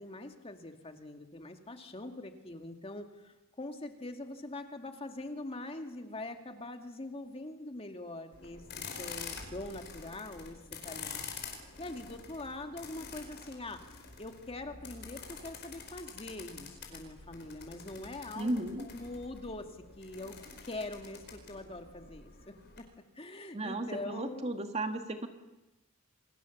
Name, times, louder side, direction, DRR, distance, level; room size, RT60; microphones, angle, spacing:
voice 1, 0.0-11.2 11.8-22.9 23.1-24.5, left 2 dB, 30° left, 6 dB, 2.0 m, -43 dB
sound 1, 8.3-22.8, left 5 dB, 55° left, 5.1 m, -47 dB
voice 2, 18.4-18.9 23.5-25.3, right 1 dB, 30° right, 6 dB, 2.1 m, -34 dB
29.0 x 24.0 x 7.1 m, 1.0 s
head